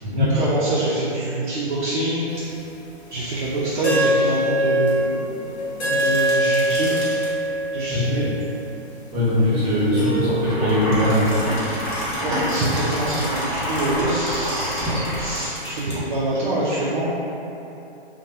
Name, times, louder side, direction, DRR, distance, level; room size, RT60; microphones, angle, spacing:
voice 1, 0.1-2.4 3.1-6.9 7.4-8.3 9.3-10.0 12.2-17.1, right 2 dB, 50° right, -8 dB, 0.5 m, -26 dB
sound 1, 2.5-2.6 3.8-8.7 10.0-11.5, equal, 75° left, 0.8 m, -24 dB
sound 2, 5.8-7.3 10.7-16.0, left 1 dB, 40° left, 1.0 m, -37 dB
voice 2, 7.9-8.3 9.1-11.3, left 1 dB, 25° right, -9 dB, 1.0 m, -20 dB
sound 3, 10.4-15.4, equal, ahead, 0.9 m, -27 dB
2.9 x 2.2 x 2.6 m, 2.9 s
hypercardioid pair, 145°, 33 cm